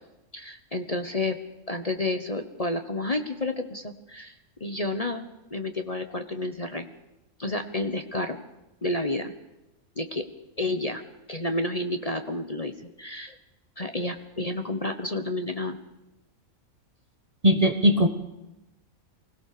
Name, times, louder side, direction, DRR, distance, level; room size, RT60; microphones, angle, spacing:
voice 1, 0.3-1.4 1.7-4.3 4.6-5.2 5.5-6.9 7.4-8.4 8.8-9.3 10.0-10.3 10.6-11.0 11.3-13.3 13.8-15.8, left 2 dB, 25° left, 7 dB, 1.2 m, -30 dB
voice 2, 17.4-18.1, equal, 25° right, 8 dB, 1.3 m, -19 dB
24.0 x 17.5 x 6.8 m, 0.96 s
omnidirectional pair, 1.5 m